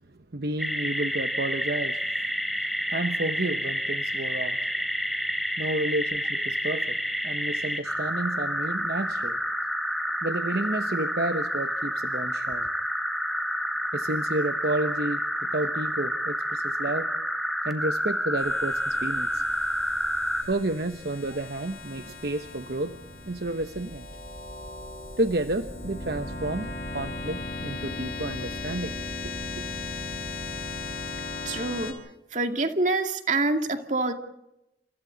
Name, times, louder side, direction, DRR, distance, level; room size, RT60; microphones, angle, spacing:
voice 1, 0.3-2.2 2.9-4.7 5.6-7.0 7.2-9.4 10.2-12.7 13.9-17.1 17.6-19.4 20.4-23.0 23.3-24.1 25.2-29.1 29.5-29.6, right 2 dB, 60° right, 8 dB, 1.1 m, -31 dB
sound 1, 0.6-20.4, equal, ahead, 2.9 m, -29 dB
sound 2, 18.4-31.9, left 2 dB, 60° left, 5.3 m, -37 dB
voice 2, 31.5-32.0 32.3-34.1, right 2 dB, 45° right, 5 dB, 2.3 m, -26 dB
29.5 x 27.5 x 4.1 m, 0.88 s
head